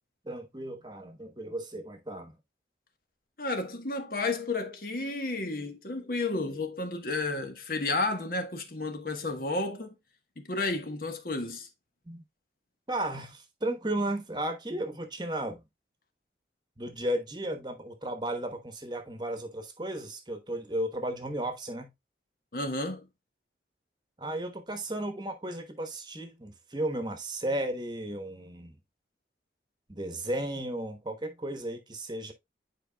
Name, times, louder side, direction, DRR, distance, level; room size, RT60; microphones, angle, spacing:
voice 1, 0.2-2.4 12.1-12.2 12.9-15.6 16.8-21.9 24.2-28.7 29.9-32.3, right 1 dB, 25° right, 1.1 m, -34 dB
voice 2, 3.4-9.9 10.4-11.7 22.5-23.1, left 2 dB, 50° left, 1.2 m, -32 dB
10.0 x 4.8 x 2.2 m
head